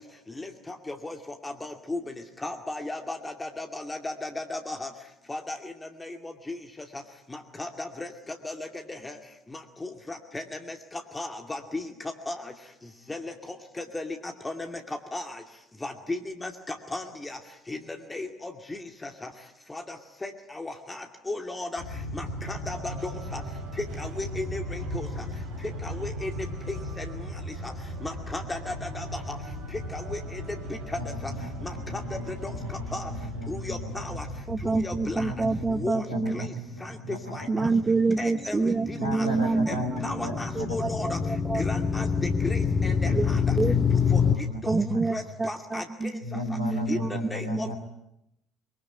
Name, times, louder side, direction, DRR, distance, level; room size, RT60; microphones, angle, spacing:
voice 1, 0.4-1.2 1.4-2.1 2.4-4.9 5.3-5.7 6.0-6.6 6.9-7.0 7.3-9.2 9.5-11.9 12.3-12.5 13.1-15.4 15.8-17.4 17.7-17.8 18.1-19.3 19.7-20.0 20.2-21.8 22.1-23.4 23.8-25.1 25.8-26.3 26.7-27.2 27.6-27.7 28.0-29.4 29.9-30.4 31.2-31.3 31.6-33.1 33.5-34.3 34.6-35.3 35.7-36.5 36.8-37.0 37.3-37.5 38.2-39.3 39.7-41.2 41.5-42.1 42.4-43.6 44.1-44.8 45.1-46.4 46.9-47.7, left 2 dB, 15° left, 5 dB, 2.4 m, -36 dB
sound 1, 21.8-35.8, left 1 dB, 65° left, 6.4 m, -37 dB
sound 2, 22.7-34.7, right 6 dB, 55° right, 3.8 m, -49 dB
voice 2, 31.0-34.4 35.1-37.8 38.9-40.9 43.0-43.9 44.2-45.0 46.2-47.8, equal, 90° right, 2 dB, 3.0 m, -36 dB
voice 3, 34.5-36.5 37.5-39.8 40.3-41.6 43.1-43.3 43.6-43.7 44.7-46.1 46.4-47.1 47.5-47.7, right 3 dB, 20° right, 13 dB, 1.0 m, -27 dB
sound 3, 38.4-44.4, left 6 dB, 30° left, 1.3 m, -26 dB
23.5 x 23.0 x 9.7 m, 0.82 s
figure-of-eight pair, 55°, 0 cm